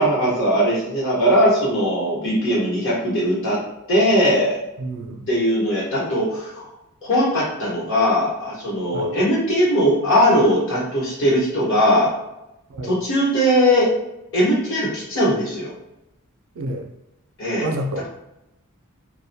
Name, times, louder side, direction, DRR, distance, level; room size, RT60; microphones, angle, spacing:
voice 1, 0.0-3.6 3.9-4.6 5.3-6.7 7.0-12.1 12.8-13.9 14.3-15.7 17.4-17.7, equal, 60° left, -6 dB, 1.0 m, -19 dB
voice 2, 4.8-5.3 8.9-9.2 12.7-12.9 16.6-16.9 17.6-18.1, right 1 dB, 65° right, 4 dB, 0.4 m, -29 dB
2.2 x 2.1 x 2.6 m, 0.89 s
head